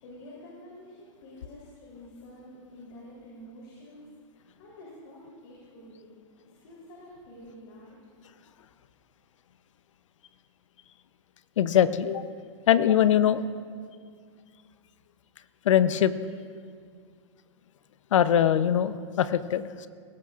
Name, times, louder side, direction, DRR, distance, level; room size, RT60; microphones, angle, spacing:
voice 1, 0.0-4.1 4.3-6.1 6.4-8.0, left 1 dB, 55° left, -5 dB, 3.7 m, -48 dB
voice 2, 11.6-12.2 12.7-13.4 15.6-16.1 18.1-19.9, left 9 dB, 75° left, 14 dB, 0.7 m, -22 dB
20.5 x 17.5 x 2.5 m, 2.1 s
hypercardioid pair, 155°, 16 cm